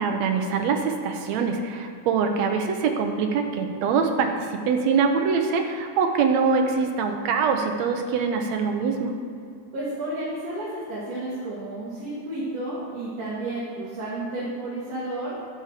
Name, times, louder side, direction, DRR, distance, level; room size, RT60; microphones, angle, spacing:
voice 1, 0.0-9.1, right 5 dB, 70° right, 4 dB, 1.8 m, -24 dB
voice 2, 9.7-15.3, right 1 dB, 55° right, -9 dB, 3.0 m, -31 dB
9.7 x 9.0 x 4.9 m, 2.4 s
omnidirectional pair, 3.7 m